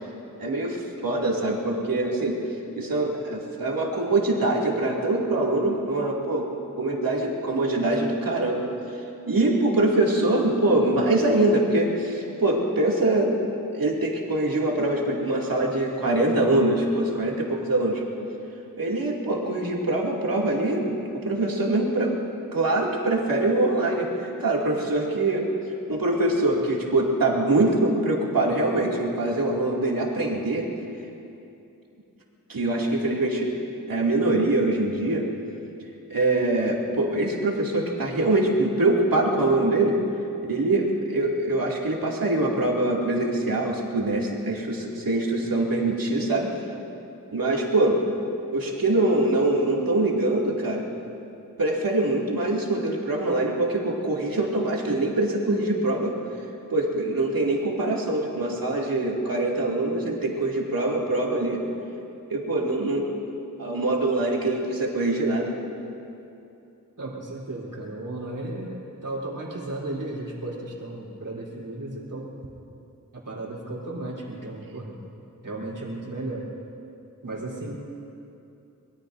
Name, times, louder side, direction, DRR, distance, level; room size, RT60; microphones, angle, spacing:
voice 1, 0.4-2.4 2.8-6.5 6.8-13.4 13.7-18.0 18.8-22.2 22.5-25.5 25.9-30.7 32.5-33.5 33.9-35.3 36.1-40.0 40.5-46.5 47.3-48.0 48.5-50.9 51.6-56.1 56.7-61.6 62.3-63.2 63.6-65.6, right 2 dB, 80° right, -3 dB, 2.6 m, -24 dB
voice 2, 67.0-72.3 73.1-75.0 75.4-76.5 77.2-77.7, right 2 dB, 65° right, -4 dB, 3.8 m, -34 dB
24.0 x 22.0 x 2.7 m, 2.8 s
wide cardioid pair, 90°, 34 cm